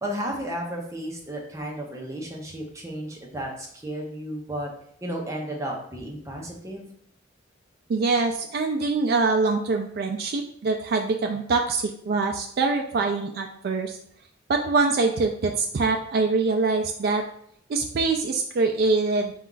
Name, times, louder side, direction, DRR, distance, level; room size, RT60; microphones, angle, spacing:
voice 1, 0.0-4.7 5.0-6.9, right 1 dB, 15° right, -1 dB, 0.8 m, -33 dB
voice 2, 7.9-14.0 14.5-17.2 17.7-19.3, right 3 dB, 55° right, 3 dB, 0.4 m, -24 dB
4.3 x 2.4 x 3.8 m, 0.65 s
head